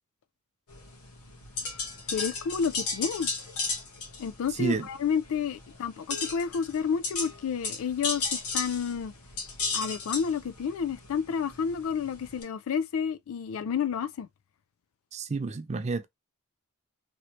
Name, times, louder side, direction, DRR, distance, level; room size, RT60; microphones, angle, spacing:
sound 1, 0.7-12.4, left 4 dB, 90° left, 1.1 m, -35 dB
voice 1, 2.1-3.3 4.2-9.1 9.7-14.3, left 6 dB, 65° left, 0.4 m, -30 dB
voice 2, 4.5-4.9 15.1-16.1, right 4 dB, 30° right, 0.4 m, -30 dB
3.0 x 2.7 x 2.9 m
head